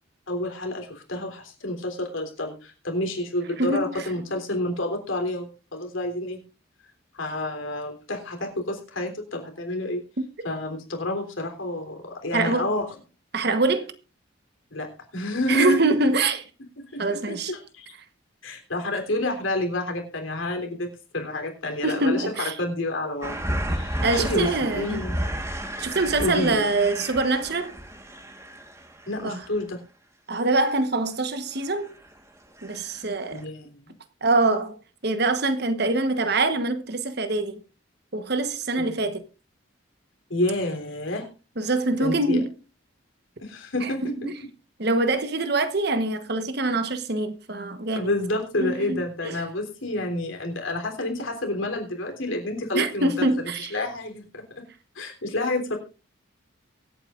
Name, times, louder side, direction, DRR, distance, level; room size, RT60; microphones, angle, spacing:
voice 1, 0.3-6.4 7.1-10.0 10.4-12.9 14.7-16.0 16.8-17.9 18.4-23.4 23.7-25.2 26.2-26.7 29.1-29.8 33.3-33.7 38.8-39.0 40.3-41.3 42.0-42.4 43.4-44.3 47.9-54.6 55.0-55.8, left 1 dB, 80° left, 3.4 m, -29 dB
voice 2, 3.6-4.0 10.2-10.3 12.3-12.7 13.3-13.9 15.5-16.4 17.0-17.5 21.8-22.5 24.0-25.0 25.8-27.7 29.2-29.4 30.3-31.9 32.6-33.4 34.2-34.8 35.0-37.6 38.1-39.2 41.6-42.5 43.8-43.9 44.2-44.4 44.8-48.1 48.6-49.3 52.7-53.7, right 2 dB, 55° right, 1.2 m, -24 dB
sound 1, 23.2-29.6 31.7-32.2 32.6-33.1 33.4-33.5, equal, 15° right, 1.4 m, -32 dB
23.5 x 8.8 x 2.5 m
head